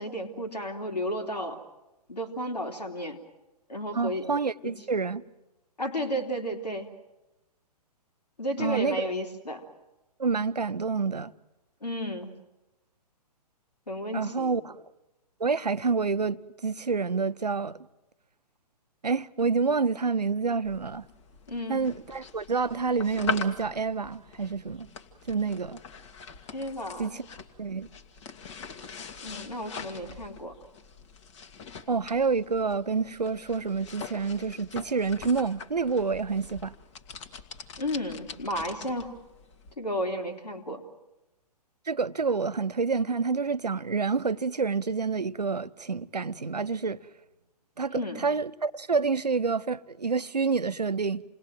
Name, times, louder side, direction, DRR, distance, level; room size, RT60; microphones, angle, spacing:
voice 1, 0.0-1.6 2.1-3.2 3.7-4.3 4.6-4.7 5.8-6.9 8.4-9.6 11.8-12.3 13.9-14.6 21.5-21.9 26.5-27.2 29.2-30.5 37.8-39.1 39.8-40.8 47.9-48.3, equal, 80° left, 3.2 m, -33 dB
voice 2, 3.9-5.2 8.6-9.1 10.2-11.3 14.1-14.8 15.4-17.8 19.0-21.1 21.7-24.9 25.3-25.8 27.0-27.2 27.6-27.9 31.9-36.7 41.9-47.0 47.8-51.2, right 4 dB, 80° right, 0.8 m, -28 dB
sound 1, 20.6-39.7, left 5 dB, 45° left, 2.0 m, -42 dB
28.0 x 20.0 x 7.8 m
figure-of-eight pair, 120°, 21 cm